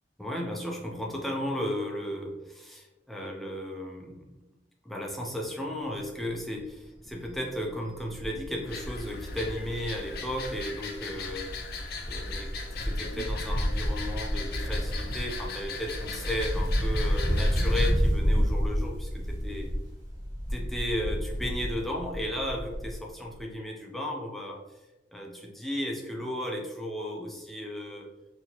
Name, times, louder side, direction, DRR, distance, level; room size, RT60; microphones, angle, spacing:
voice 1, 0.2-4.4 4.8-11.5 12.0-12.5 12.8-19.7 20.5-24.6 25.1-28.1, equal, ahead, -1 dB, 0.5 m, -35 dB
Wind, 6.2-6.3 6.7-6.8 7.1-10.6 10.9-23.1 23.3-23.4, equal, 20° right, 1.2 m, -30 dB
sound 1, 8.6-17.9, left 4 dB, 55° left, 0.5 m, -39 dB
4.1 x 2.9 x 2.9 m, 1.1 s
head